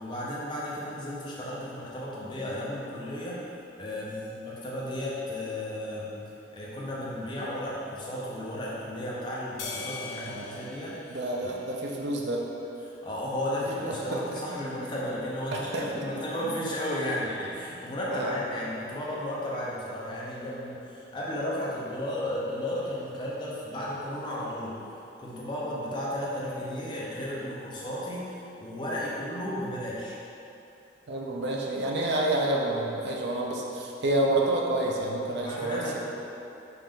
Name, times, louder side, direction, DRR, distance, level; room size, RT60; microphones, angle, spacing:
voice 1, 0.0-3.4 3.8-6.2 6.5-11.5 12.8-30.2 35.4-36.0, left 1 dB, 25° left, -6 dB, 0.7 m, -34 dB
sound 1, 9.6-12.2, left 4 dB, 75° left, 0.5 m, -41 dB
voice 2, 10.1-10.6 11.1-12.4 13.8-14.2 15.5-15.8 18.1-18.3 31.1-36.0, right 1 dB, 65° right, -1 dB, 0.5 m, -29 dB
5.4 x 2.5 x 3.6 m, 2.9 s
head